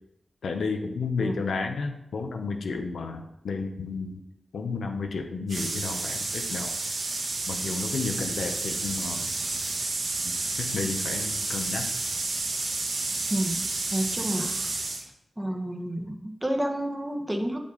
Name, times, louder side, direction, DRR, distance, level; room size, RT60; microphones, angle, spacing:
voice 1, 0.4-4.2 4.5-6.7 7.5-9.3 10.6-11.9, left 4 dB, 90° left, 4 dB, 0.7 m, -32 dB
sound 1, 5.5-15.0, right 3 dB, 70° right, 1.0 m, -30 dB
voice 2, 13.3-13.7 13.9-14.8 15.4-17.6, right 1 dB, 15° right, 4 dB, 1.1 m, -30 dB
7.0 x 5.1 x 3.9 m, 0.85 s
cardioid pair, 45°, 0 cm